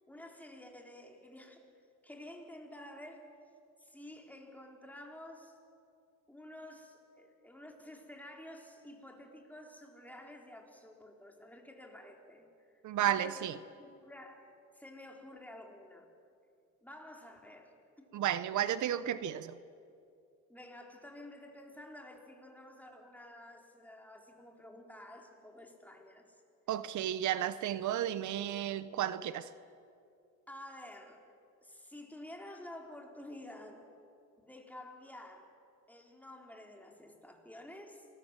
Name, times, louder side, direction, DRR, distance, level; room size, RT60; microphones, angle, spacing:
voice 1, 0.1-1.6 2.0-3.3 3.8-5.6 6.3-13.5 13.8-14.5 14.7-16.1 16.8-18.1 20.5-26.4 30.5-31.2 31.6-33.9 34.4-35.5 35.9-38.1, left 1 dB, 5° left, 4.0 m, -51 dB
voice 2, 12.8-13.5 18.1-19.6 26.7-29.5, right 11 dB, 75° right, 0.9 m, -33 dB
27.0 x 20.0 x 7.5 m
cardioid pair, 90°, 30 cm